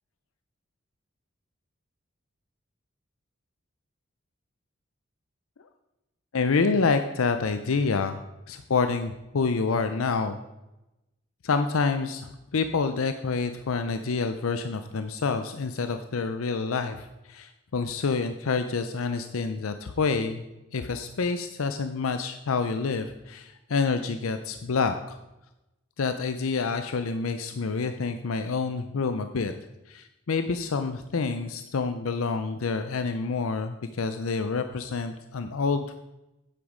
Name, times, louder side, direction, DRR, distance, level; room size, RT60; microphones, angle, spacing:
voice 1, 6.3-8.2 8.5-10.4 11.4-20.4 20.7-25.2 26.0-29.5 29.9-35.9, left 4 dB, 90° left, 9 dB, 0.6 m, -28 dB
9.2 x 8.0 x 5.0 m, 0.96 s
head